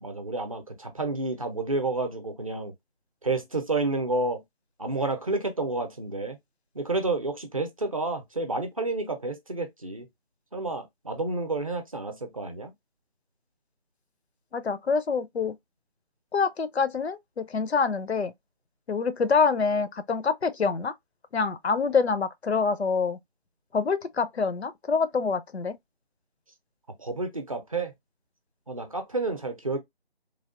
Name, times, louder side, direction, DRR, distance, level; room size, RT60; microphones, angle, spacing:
voice 1, 0.0-2.7 3.2-4.4 4.8-6.4 6.7-10.1 10.5-12.7 27.0-27.9 28.7-29.8, right 2 dB, 35° right, 0.6 m, -30 dB
voice 2, 14.5-15.6 16.3-18.3 18.9-20.9 21.3-23.2 23.7-25.8, left 5 dB, 85° left, 0.6 m, -26 dB
3.3 x 2.2 x 2.3 m
figure-of-eight pair, 155°, 31 cm